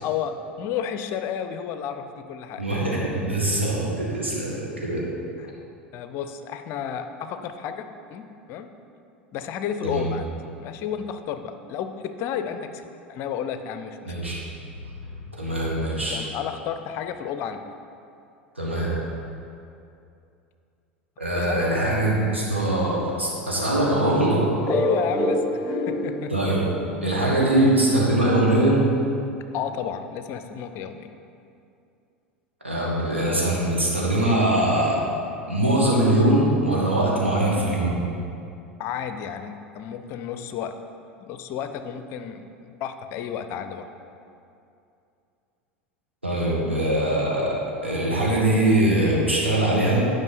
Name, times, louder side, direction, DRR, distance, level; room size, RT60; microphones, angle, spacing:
voice 1, 0.0-2.6 5.4-5.5 5.9-8.7 9.3-14.1 16.1-17.6 21.3-21.7 24.7-26.3 29.5-31.1 38.8-40.8 41.3-43.9, left 8 dB, 45° left, 9 dB, 0.5 m, -32 dB
voice 2, 2.6-5.1 9.8-10.0 14.1-14.4 15.4-16.2 18.6-19.0 21.2-24.5 26.3-26.7 27.0-28.9 32.6-35.0 35.5-38.0 46.2-47.6 47.8-50.0, right 1 dB, 90° right, -5 dB, 1.6 m, -22 dB
sound 1, 24.6-29.2, left 1 dB, 5° left, 1.4 m, -29 dB
10.5 x 5.2 x 4.2 m, 2.6 s
figure-of-eight pair, 80°, 6 cm